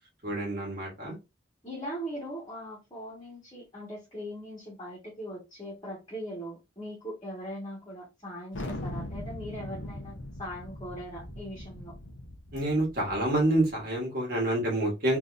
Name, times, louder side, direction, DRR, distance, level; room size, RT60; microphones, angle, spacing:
voice 1, 0.2-1.1 12.5-15.2, right 1 dB, 50° right, 1.6 m, -27 dB
voice 2, 1.6-11.9, equal, 20° left, 1.5 m, -40 dB
Thunder, 8.5-13.7, left 1 dB, 80° left, 0.9 m, -40 dB
3.8 x 2.9 x 2.5 m
head